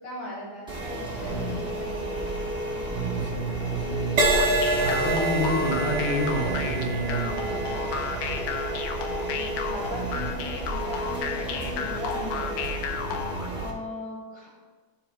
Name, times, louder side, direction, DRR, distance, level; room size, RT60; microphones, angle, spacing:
voice 1, 0.0-2.2 9.2-12.8 13.5-14.5, left 1 dB, 60° left, -7 dB, 2.8 m, -38 dB
sound 1, 0.7-13.7, right 1 dB, 5° right, 0.3 m, -32 dB
voice 2, 1.2-1.6 2.8-7.8 12.9-13.4, right 1 dB, 40° left, -7 dB, 2.6 m, -30 dB
Crash cymbal, 4.2-11.8 12.5-12.8, right 2 dB, 80° right, 0.8 m, -29 dB
sound 2, 4.3-13.5, left 7 dB, 85° left, 1.4 m, -33 dB
12.5 x 4.7 x 3.0 m, 1.5 s
omnidirectional pair, 3.5 m